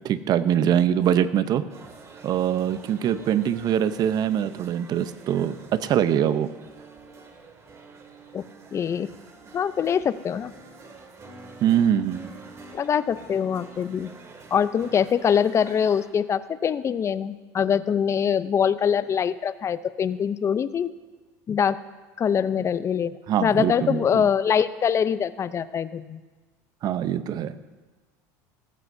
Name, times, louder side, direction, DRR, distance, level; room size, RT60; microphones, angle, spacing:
voice 1, 0.0-1.6 2.2-6.5 11.6-12.3 23.3-24.3 26.8-27.5, right 9 dB, 50° right, 13 dB, 0.7 m, -23 dB
sound 1, 1.7-16.1, right 3 dB, 35° right, 2.3 m, -47 dB
voice 2, 8.7-9.1 9.5-10.5 12.7-14.1 14.5-20.9 21.5-21.8 22.2-26.2, left 7 dB, 35° left, 15 dB, 0.6 m, -24 dB
19.0 x 14.5 x 2.7 m, 1.3 s
supercardioid pair, 95°, 9 cm